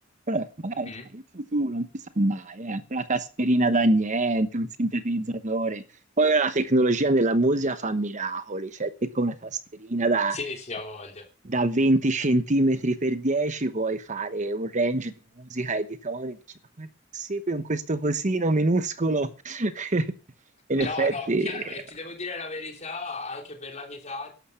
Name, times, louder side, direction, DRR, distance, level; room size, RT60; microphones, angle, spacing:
voice 1, 0.3-1.9 2.2-5.8 6.2-10.4 11.4-16.4 16.8-16.9 17.1-20.1 20.7-21.6, right 2 dB, 40° right, 1.0 m, -25 dB
voice 2, 10.3-11.3 20.7-24.3, left 3 dB, 35° left, 3.2 m, -35 dB
13.0 x 11.5 x 5.8 m
head